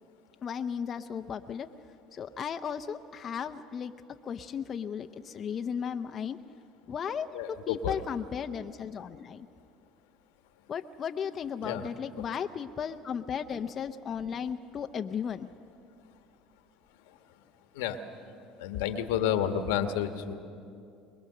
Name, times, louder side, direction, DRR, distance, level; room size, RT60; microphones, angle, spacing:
voice 1, 0.4-1.7 2.1-3.9 4.2-6.4 6.9-9.5 10.7-15.5, left 7 dB, 40° left, 7 dB, 0.6 m, -35 dB
voice 2, 7.3-8.0 11.6-11.9 12.2-12.3 17.7-18.0 18.6-20.3, left 9 dB, 85° left, 8 dB, 1.4 m, -30 dB
23.5 x 20.5 x 6.7 m, 2.5 s
supercardioid pair, 95°, 0 cm